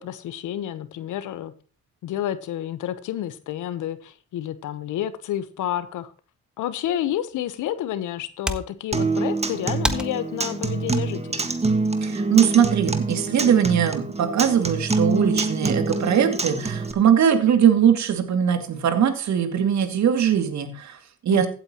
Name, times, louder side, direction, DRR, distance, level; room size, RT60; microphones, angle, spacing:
voice 1, 0.0-1.5 2.0-6.1 6.6-11.4 21.3-21.5, left 11 dB, 80° left, 13 dB, 1.1 m, -30 dB
sound 1, 7.3-12.4, equal, 5° right, 1.3 m, -35 dB
Acoustic guitar, 8.9-16.9, right 3 dB, 20° right, 1.8 m, -26 dB
voice 2, 12.0-21.5, right 8 dB, 65° right, 7 dB, 2.5 m, -21 dB
15.5 x 8.9 x 3.0 m, 0.38 s
cardioid pair, 90°, 30 cm